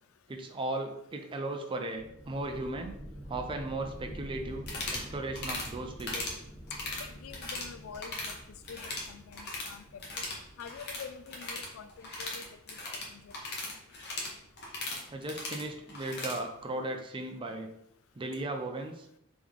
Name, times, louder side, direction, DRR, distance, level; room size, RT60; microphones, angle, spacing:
voice 1, 0.3-3.0 3.3-6.4 15.1-17.7 18.2-19.1, right 2 dB, 25° right, 4 dB, 0.4 m, -36 dB
sound 1, 1.9-13.4, equal, 5° left, 1.0 m, -48 dB
sound 2, 4.6-5.1 5.4-5.7 6.0-6.4 6.7-7.7 7.9-8.4 8.6-9.7 10.0-16.4, left 2 dB, 55° left, 0.9 m, -38 dB
voice 2, 7.0-10.2 10.6-13.3 18.3-18.4, left 6 dB, 75° left, 12 dB, 0.3 m, -47 dB
3.7 x 3.0 x 3.6 m, 0.76 s
head